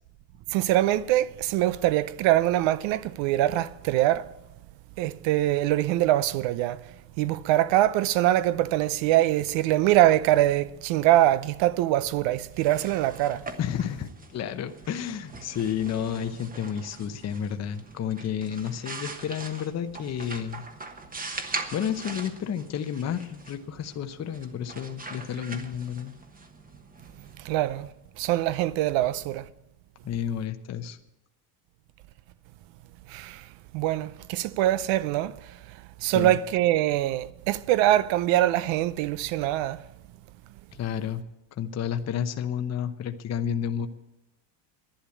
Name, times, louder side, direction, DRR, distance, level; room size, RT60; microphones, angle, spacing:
voice 1, 0.5-4.3 5.0-6.8 7.2-13.4 27.4-27.9 28.2-29.5 33.1-33.4 33.7-35.3 36.0-39.8, right 14 dB, 65° right, 0.7 m, -23 dB
sound 1, 12.4-28.1, right 3 dB, 15° right, 1.2 m, -42 dB
voice 2, 13.6-20.6 21.7-26.1 30.0-31.0 36.0-36.4 40.7-41.2 41.5-43.9, left 8 dB, 30° left, 0.9 m, -31 dB
11.5 x 10.0 x 8.4 m
cardioid pair, 125°, 49 cm